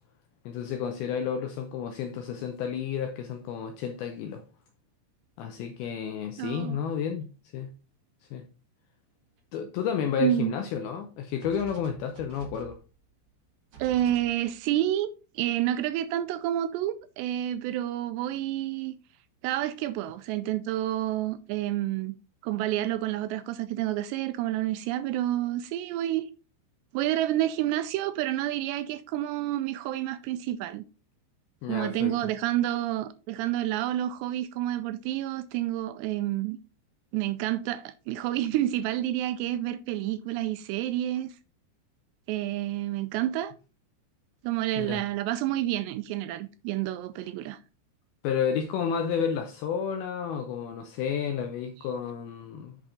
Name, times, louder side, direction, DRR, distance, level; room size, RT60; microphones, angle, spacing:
voice 1, 0.5-4.4 5.4-7.3 7.5-7.7 8.3-8.4 9.5-12.8 31.6-32.2 44.8-45.0 48.2-52.8, left 7 dB, 80° left, 2.2 m, -31 dB
sound 1, 5.2-5.3 6.7-6.8 7.0-7.2 9.4-9.5 9.8-10.5 10.8-10.9 11.4-14.9, right 5 dB, 65° right, 1.2 m, -49 dB
voice 2, 6.4-6.8 10.2-10.5 13.8-19.0 19.4-22.2 22.4-26.3 26.9-30.8 31.7-36.6 37.1-41.3 42.3-43.5 44.4-47.6, right 13 dB, 85° right, 2.6 m, -29 dB
8.3 x 6.0 x 3.8 m
omnidirectional pair, 5.2 m